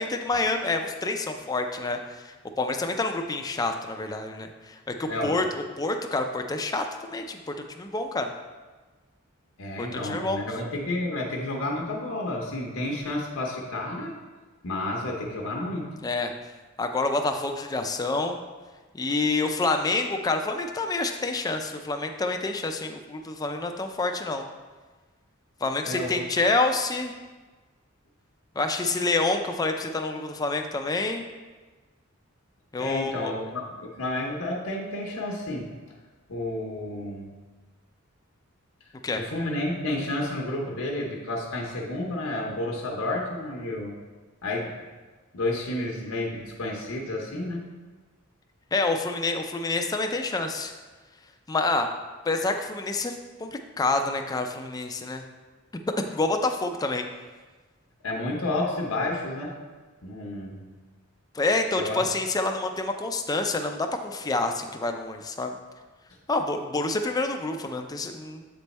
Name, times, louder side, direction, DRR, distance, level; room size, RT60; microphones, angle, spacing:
voice 1, 0.0-7.4 7.8-8.3 9.8-10.4 16.0-16.3 16.8-18.4 18.9-24.5 25.6-27.1 28.6-31.2 32.7-33.3 39.0-39.2 48.7-50.7 51.5-51.9 52.3-53.1 53.4-53.5 53.8-55.2 56.1-57.0 61.3-65.6 66.3-68.4, left 3 dB, 20° left, 5 dB, 0.4 m, -27 dB
voice 2, 5.1-5.4 9.6-14.1 14.6-15.9 25.8-26.2 32.8-35.7 36.3-37.3 39.2-43.9 44.4-44.7 45.3-47.7 58.0-59.6 60.0-60.6 61.8-62.0, left 1 dB, 80° left, -1 dB, 0.8 m, -31 dB
7.5 x 3.4 x 4.1 m, 1.3 s
head